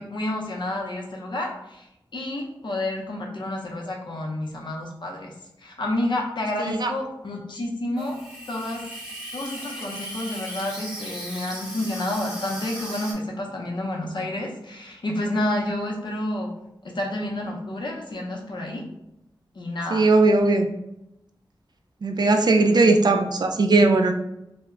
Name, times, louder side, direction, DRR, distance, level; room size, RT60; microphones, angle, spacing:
voice 1, 0.0-1.8 2.1-5.3 5.6-8.2 8.5-8.9 9.3-16.5 16.8-18.8 19.5-20.1 22.5-22.8, left 1 dB, 65° left, 0 dB, 0.6 m, -29 dB
voice 2, 6.6-6.9 19.9-20.7 22.0-24.1, right 3 dB, 55° right, 5 dB, 0.3 m, -18 dB
Water tap faucet / Sink (filling or washing), 8.0-13.1, equal, 10° right, 0.7 m, -37 dB
2.1 x 2.0 x 3.6 m, 0.86 s
wide cardioid pair, 60°, 9 cm